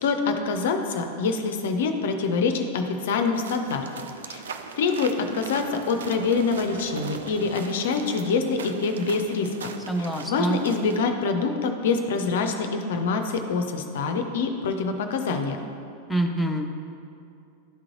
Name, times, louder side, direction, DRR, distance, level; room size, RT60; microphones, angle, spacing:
voice 1, 0.0-3.9 4.2-4.4 4.8-9.5 10.0-15.6, left 4 dB, 55° left, 6 dB, 0.4 m, -25 dB
sound 1, 3.3-11.0, right 6 dB, 65° right, 0.4 m, -40 dB
voice 2, 9.9-10.6 16.1-16.7, right 1 dB, 5° left, 2 dB, 0.6 m, -25 dB
11.0 x 3.7 x 3.0 m, 2.5 s
figure-of-eight pair, 90°, 0 cm